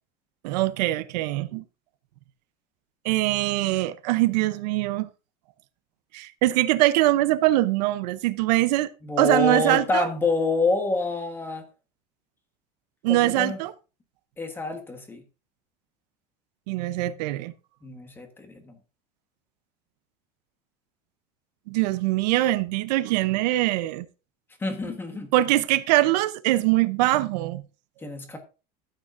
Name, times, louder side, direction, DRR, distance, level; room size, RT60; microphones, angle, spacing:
voice 1, 0.4-1.6 3.0-5.1 6.1-8.9 9.2-10.1 13.0-13.7 16.7-17.5 21.7-24.0 25.3-27.6, right 16 dB, 90° right, 0.8 m, -23 dB
voice 2, 9.0-11.6 13.1-13.6 14.4-15.2 17.8-18.7 24.6-25.3 28.0-28.4, left 3 dB, 10° left, 1.3 m, -27 dB
13.0 x 9.1 x 2.6 m
cardioid pair, 175°, 21 cm